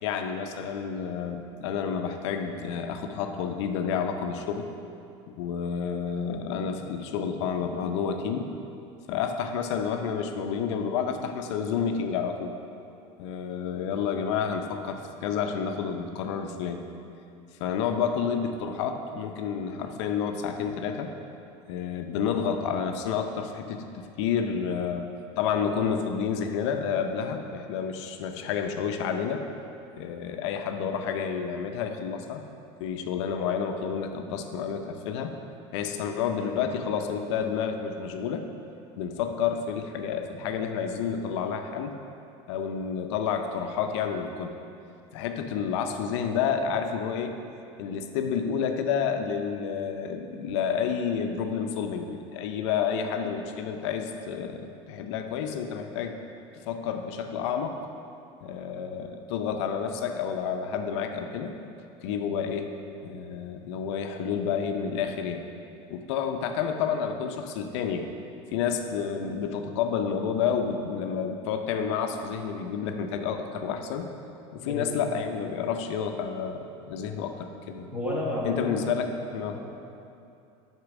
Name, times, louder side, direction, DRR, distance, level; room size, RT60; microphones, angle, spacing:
voice 1, 0.0-4.7 5.3-8.5 9.1-12.5 13.2-16.9 17.6-21.1 21.7-25.1 25.4-29.4 30.0-32.4 32.8-35.3 35.7-38.5 39.0-41.9 42.5-44.6 45.1-47.4 47.8-56.2 56.7-57.8 58.4-61.6 62.0-62.7 63.0-65.5 65.9-68.1 68.5-74.1 74.5-77.9 78.4-79.6, left 7 dB, 80° left, 5 dB, 0.5 m, -30 dB
voice 2, 74.6-74.9 77.9-78.8 79.5-79.6, left 1 dB, 10° right, -5 dB, 1.3 m, -31 dB
6.5 x 4.4 x 6.0 m, 2.6 s
cardioid pair, 160°, 14 cm